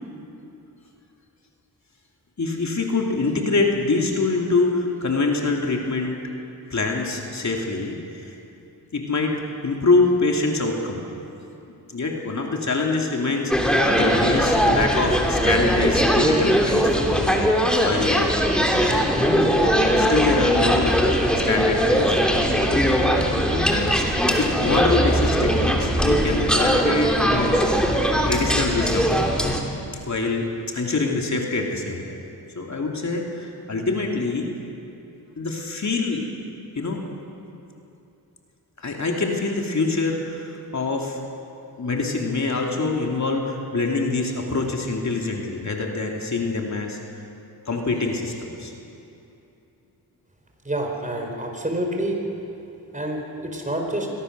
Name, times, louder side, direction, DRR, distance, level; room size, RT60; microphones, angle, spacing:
voice 1, 2.4-6.2 6.7-8.3 8.9-11.0 11.9-17.4 17.8-18.8 19.2-22.8 23.5-27.8 28.2-29.1 30.1-30.5 30.7-32.2 32.5-34.5 35.4-36.3 36.8-37.0 38.8-41.2 41.8-47.0 47.7-48.7, left 3 dB, 50° left, 1 dB, 2.7 m, -25 dB
sound 1, 13.5-29.6, equal, ahead, 3.0 m, -20 dB
voice 2, 50.6-52.2 52.9-54.1, right 1 dB, 20° right, 2 dB, 4.5 m, -27 dB
23.5 x 17.5 x 6.8 m, 2.8 s
cardioid pair, 65°, 37 cm